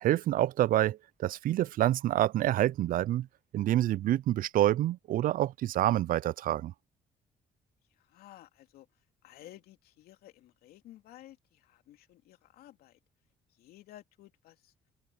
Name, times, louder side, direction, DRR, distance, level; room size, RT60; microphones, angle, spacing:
voice 1, 0.0-3.3 3.5-6.7, right 13 dB, 65° right, 0.5 m, -27 dB
voice 2, 8.0-8.9 9.2-13.0 13.5-14.7, left 14 dB, 75° left, 2.9 m, -54 dB
open air
supercardioid pair, 60°, 16 cm